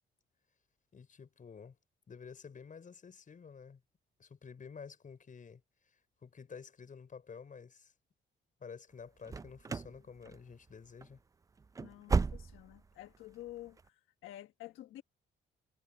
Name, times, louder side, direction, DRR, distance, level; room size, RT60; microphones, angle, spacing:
voice 1, 0.9-1.8 2.1-3.8 4.2-5.6 6.2-7.9 8.6-11.2, left 6 dB, 40° left, 5.7 m, -50 dB
sound 1, 9.2-10.0 10.2-10.7 11.0-11.1 11.6-12.8 13.1-13.2 13.8-13.9, right 4 dB, 15° right, 0.3 m, -34 dB
voice 2, 11.8-15.0, left 14 dB, 85° left, 1.3 m, -50 dB
cardioid pair, 90°, 20 cm